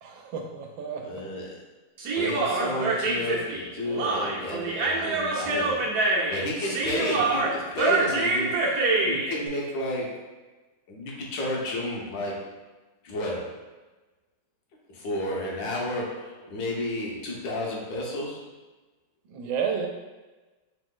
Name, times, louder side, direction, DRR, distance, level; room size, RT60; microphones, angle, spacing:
voice 1, 0.0-1.2 19.3-19.9, right 7 dB, 85° right, 3 dB, 1.4 m, -31 dB
voice 2, 1.0-1.6 2.1-10.3 10.9-12.6 13.0-13.6 14.9-18.5, left 1 dB, 75° left, -2 dB, 1.5 m, -32 dB
Human voice, 2.0-9.3, right 3 dB, 65° right, 1.2 m, -25 dB
3.8 x 3.0 x 3.7 m, 1.2 s
omnidirectional pair, 2.0 m